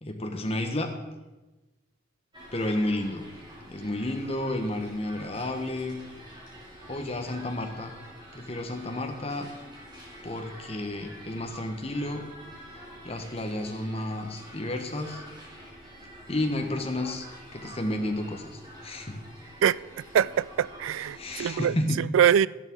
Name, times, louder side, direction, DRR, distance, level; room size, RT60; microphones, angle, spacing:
voice 1, 0.0-0.9 2.5-3.3 3.7-6.0 6.9-7.9 8.3-9.5 10.2-12.2 13.0-15.2 16.3-17.3 17.5-19.2 21.1-22.0, left 1 dB, 30° left, 1.4 m, -31 dB
sound 1, 2.3-21.6, equal, 20° right, 3.1 m, -47 dB
voice 2, 20.1-21.7 22.1-22.5, right 9 dB, 85° right, 0.3 m, -23 dB
13.0 x 10.5 x 4.7 m
head